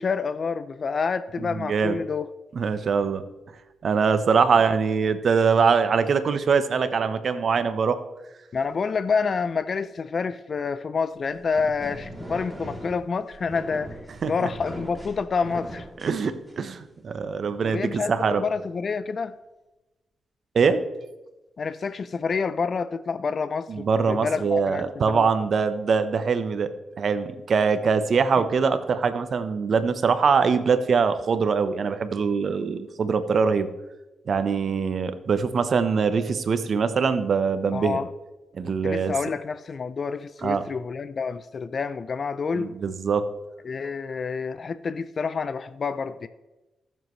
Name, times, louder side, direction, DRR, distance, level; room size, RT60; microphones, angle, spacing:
voice 1, 0.0-2.3 8.5-14.0 14.3-15.9 17.6-19.4 21.6-25.3 37.7-38.1 38.8-42.7 43.6-46.3, left 5 dB, 55° left, 13 dB, 0.5 m, -28 dB
voice 2, 1.4-2.0 2.5-3.2 3.8-8.0 14.2-14.5 16.0-18.4 20.5-20.8 23.7-26.7 27.0-33.7 34.3-38.0 38.5-39.1 40.4-40.6 42.5-43.2, right 5 dB, 65° right, 10 dB, 1.0 m, -23 dB
sound 1, 11.2-16.8, right 1 dB, 5° right, 3.1 m, -40 dB
20.0 x 7.4 x 3.2 m, 1.1 s
cardioid pair, 65°, 0 cm